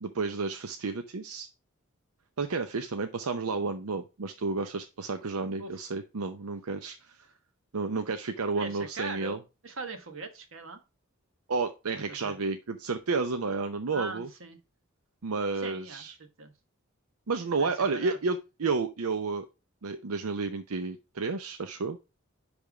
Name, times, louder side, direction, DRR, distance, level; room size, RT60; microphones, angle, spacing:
voice 1, 0.0-1.5 2.4-7.2 7.7-9.4 11.5-14.3 15.2-16.1 17.3-19.5 19.8-22.0, right 4 dB, 80° right, 7 dB, 0.7 m, -31 dB
voice 2, 8.5-9.4 9.6-10.8 11.9-12.4 13.9-14.6 15.6-16.0 16.4-16.5 17.6-18.2, right 3 dB, 65° right, 7 dB, 1.3 m, -40 dB
10.5 x 3.5 x 4.7 m, 0.28 s
head